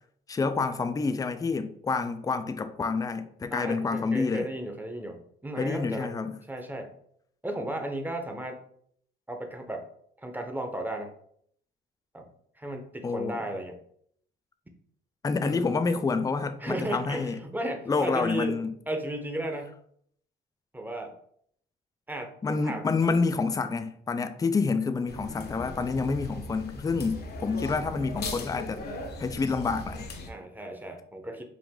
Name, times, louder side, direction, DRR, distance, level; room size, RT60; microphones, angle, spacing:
voice 1, 0.3-4.5 5.6-6.4 13.0-13.4 15.2-17.4 17.9-18.7 22.4-28.8 29.2-30.1, left 4 dB, 20° left, 0.4 m, -28 dB
voice 2, 3.5-6.1 6.5-6.9 7.4-8.6 9.3-9.9 10.2-11.1 12.1-12.3 12.6-13.8 15.4-15.8 16.6-18.6 18.9-19.7 20.7-21.1 22.1-22.9 30.3-31.4, right 1 dB, 10° right, 0.8 m, -34 dB
sound 1, 25.1-30.3, left 2 dB, 55° left, 0.8 m, -38 dB
4.8 x 2.5 x 3.6 m
cardioid pair, 90°, 20 cm